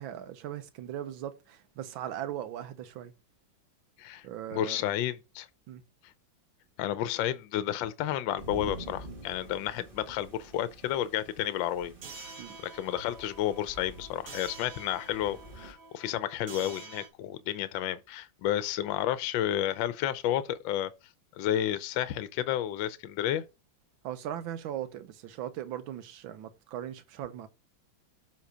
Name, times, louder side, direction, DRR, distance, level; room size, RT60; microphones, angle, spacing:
voice 1, 0.0-3.1 4.2-4.8 5.7-5.8 12.4-12.6 24.0-27.5, right 11 dB, 80° right, 1.6 m, -39 dB
voice 2, 4.5-5.5 6.8-11.9 12.2-12.3 12.6-20.9 21.3-23.4, left 12 dB, 75° left, 1.3 m, -31 dB
sound 1, 8.4-15.7, right 2 dB, 30° right, 1.7 m, -48 dB
sound 2, 12.0-17.1, right 4 dB, 45° right, 1.5 m, -47 dB
7.3 x 3.9 x 4.9 m
omnidirectional pair, 2.2 m